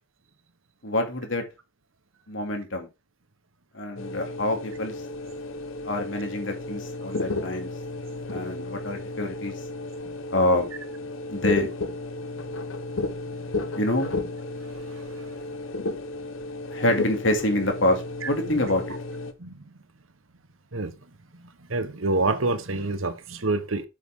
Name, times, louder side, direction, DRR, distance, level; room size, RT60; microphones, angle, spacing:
voice 1, 0.8-1.4 2.3-2.9 3.7-5.0 5.8-7.7 8.3-9.5 10.3-10.7 11.3-11.7 13.7-14.1 16.7-19.0, left 1 dB, 70° left, 2.8 m, -26 dB
sound 1, 4.0-19.3, left 2 dB, 90° left, 1.3 m, -33 dB
voice 2, 21.7-23.8, right 2 dB, 90° right, 1.3 m, -26 dB
8.3 x 8.2 x 3.8 m
head